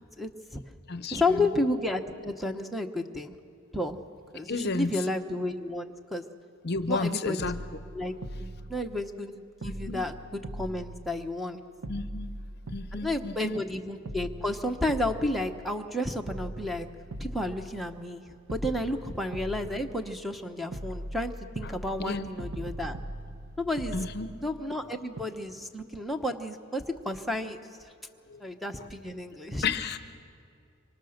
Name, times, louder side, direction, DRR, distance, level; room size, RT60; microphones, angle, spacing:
voice 1, 0.2-0.6 1.1-3.3 3.7-4.0 4.3-6.2 6.9-7.5 7.9-9.3 9.6-11.6 12.9-16.9 17.2-18.2 18.5-23.0 23.6-24.0 24.4-27.6 28.4-29.6, left 1 dB, ahead, 5 dB, 1.0 m, -31 dB
voice 2, 0.9-1.5 4.5-5.1 6.6-7.6 9.6-10.0 11.9-12.4 12.7-13.6 21.6-22.3 23.9-24.3 28.3-28.4 28.8-28.9 29.6-30.0, left 4 dB, 50° left, 11 dB, 0.7 m, -32 dB
sound 1, 6.9-7.1 7.4-9.3 9.6-11.5 11.8-13.7 14.1-16.0 16.3-18.2 18.5-20.4 20.7-24.9 25.2-25.3, right 1 dB, 70° right, 1.0 m, -41 dB
25.5 x 24.5 x 6.5 m, 2.5 s
head